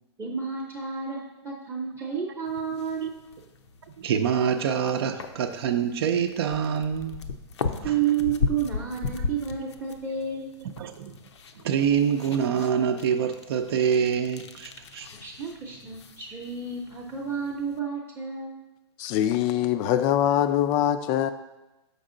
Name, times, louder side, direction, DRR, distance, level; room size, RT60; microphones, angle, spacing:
voice 1, 0.2-3.1 7.8-10.5 15.2-18.6, right 7 dB, 15° right, -3 dB, 0.7 m, -30 dB
sound 1, 2.5-17.8, left 5 dB, 80° left, 0.6 m, -37 dB
voice 2, 3.9-7.3 7.8-8.0 9.2-9.3 10.8-11.2 11.6-15.1, right 7 dB, 60° right, 5 dB, 0.6 m, -26 dB
voice 3, 19.0-21.3, left 11 dB, 30° left, 12 dB, 0.3 m, -23 dB
6.5 x 5.4 x 3.8 m, 1.0 s
hypercardioid pair, 140°, 15 cm